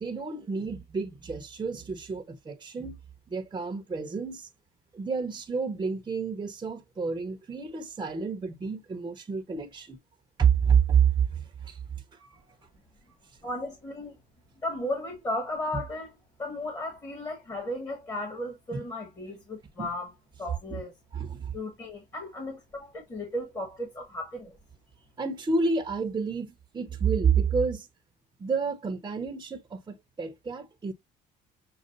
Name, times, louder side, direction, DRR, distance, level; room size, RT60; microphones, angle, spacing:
voice 1, 0.0-3.0 3.3-4.5 4.9-10.0 10.4-11.8 12.1-12.4 18.7-18.8 19.8-19.9 20.7-20.8 21.1-21.5 25.2-27.9 28.4-30.9, right 6 dB, 25° right, 1.0 m, -29 dB
voice 2, 13.4-14.2 14.6-16.1 16.4-20.1 20.4-20.9 21.5-24.6, left 1 dB, 25° left, 1.7 m, -35 dB
6.5 x 2.4 x 2.6 m
cardioid pair, 110°, 17 cm